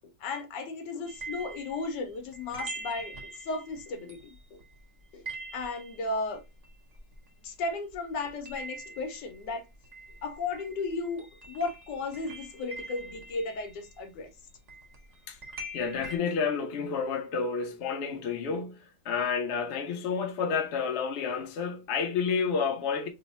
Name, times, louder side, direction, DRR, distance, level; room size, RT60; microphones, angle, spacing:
voice 1, 0.2-4.6 5.1-5.2 5.5-6.4 7.4-9.7 10.2-14.3, left 3 dB, 80° left, 1.3 m, -35 dB
sound 1, 1.1-7.7 7.9-16.2, right 2 dB, 35° right, 0.7 m, -44 dB
voice 2, 15.7-18.8 19.0-23.1, left 5 dB, 60° left, 0.7 m, -30 dB
3.2 x 2.0 x 4.0 m
omnidirectional pair, 1.9 m